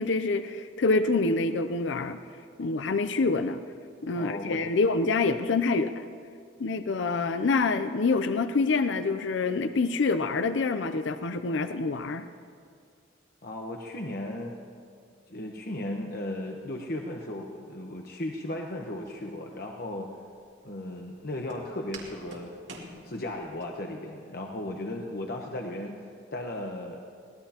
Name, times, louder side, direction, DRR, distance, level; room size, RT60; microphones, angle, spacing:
voice 1, 0.0-2.2 2.6-3.6 4.0-6.1 6.6-12.3, left 3 dB, 80° left, 10 dB, 0.5 m, -26 dB
voice 2, 4.1-4.6 13.4-14.5 15.3-20.1 20.6-22.5 22.9-27.0, left 1 dB, 55° left, 1 dB, 1.0 m, -36 dB
Walk footsteps, 19.0-23.6, right 2 dB, 80° right, 2.5 m, -48 dB
23.5 x 18.0 x 2.9 m, 2.2 s
head